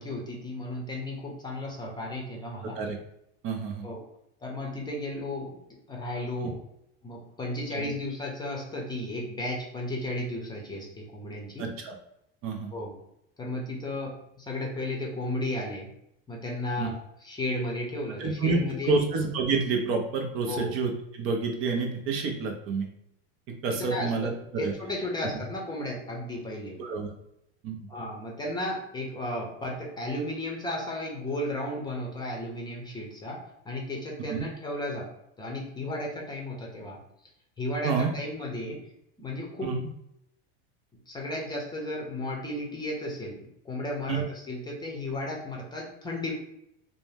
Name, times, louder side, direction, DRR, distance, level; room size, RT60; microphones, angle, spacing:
voice 1, 0.0-2.8 3.8-4.0 4.4-5.5 5.9-6.6 7.0-11.7 12.7-12.9 13.4-15.9 16.3-17.0 17.2-19.0 20.5-20.7 23.7-24.3 24.6-26.8 27.9-35.1 35.4-37.0 37.6-38.8 39.2-39.8 41.1-46.3, left 1 dB, 15° left, -1 dB, 0.6 m, -34 dB
voice 2, 2.6-3.0 3.4-3.9 6.4-6.5 7.8-7.9 11.6-11.9 12.4-12.7 16.8-16.9 18.2-22.9 23.5-24.7 26.8-27.1 27.6-27.8 34.3-34.5 37.8-38.1 39.6-39.8 44.1-44.2, right 4 dB, 45° right, 2 dB, 0.5 m, -28 dB
2.6 x 2.1 x 3.3 m, 0.79 s
supercardioid pair, 125°, 31 cm